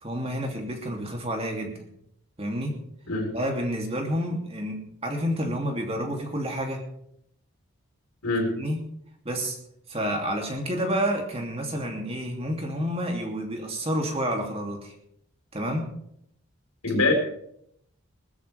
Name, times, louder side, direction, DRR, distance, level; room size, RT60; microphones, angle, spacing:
voice 1, 0.0-1.7 2.4-2.8 3.3-6.8 8.6-8.8 9.2-9.6 9.9-14.9 15.5-15.9, equal, 25° right, 1 dB, 3.0 m, -29 dB
voice 2, 8.2-8.5 16.8-17.1, left 3 dB, 80° left, 2 dB, 4.5 m, -23 dB
21.0 x 13.5 x 3.6 m, 0.71 s
head